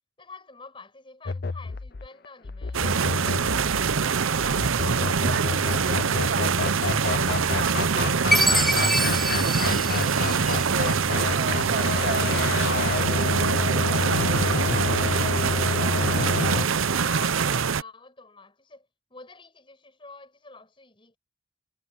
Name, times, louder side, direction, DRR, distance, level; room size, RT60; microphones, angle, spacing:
voice 1, 0.2-4.3 11.4-12.3 16.9-21.2, left 4 dB, 25° left, 7.1 m, -47 dB
sound 1, 1.3-16.7, left 3 dB, 50° left, 0.7 m, -29 dB
sound 2, 2.7-17.8, right 6 dB, 90° right, 0.7 m, -24 dB
voice 2, 4.8-11.0 11.3-16.5 17.0-17.2, right 3 dB, 55° right, 1.3 m, -36 dB
Chime, 8.3-10.9, equal, ahead, 0.9 m, -25 dB
head